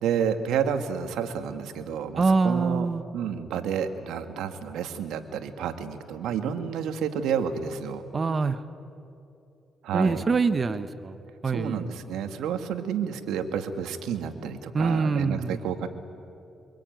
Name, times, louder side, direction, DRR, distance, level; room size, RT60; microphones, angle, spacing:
voice 1, 0.0-2.9 3.1-8.0 9.8-10.2 11.4-15.9, right 7 dB, 90° right, 8 dB, 1.7 m, -30 dB
voice 2, 2.2-3.0 8.1-8.6 9.9-11.2 11.4-11.9 14.7-15.6, right 4 dB, 40° right, 12 dB, 1.2 m, -24 dB
24.0 x 23.0 x 9.2 m, 2.7 s
cardioid pair, 75°, 0 cm